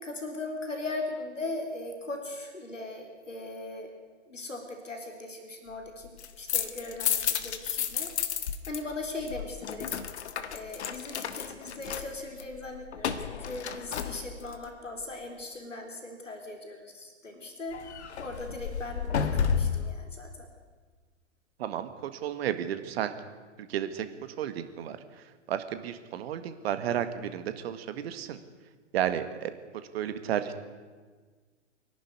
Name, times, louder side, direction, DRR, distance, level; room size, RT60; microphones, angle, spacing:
voice 1, 0.0-3.9 4.3-9.9 10.5-17.8 18.2-20.5, left 2 dB, 85° left, 4 dB, 3.9 m, -39 dB
sound 1, 6.0-8.8 9.1-14.6 17.7-19.9, left 7 dB, 65° left, 1.6 m, -32 dB
voice 2, 21.6-23.1 23.6-24.1 24.4-28.4 28.9-30.6, right 10 dB, 55° right, 10 dB, 1.9 m, -33 dB
24.5 x 11.5 x 9.7 m, 1.4 s
figure-of-eight pair, 105°, 36 cm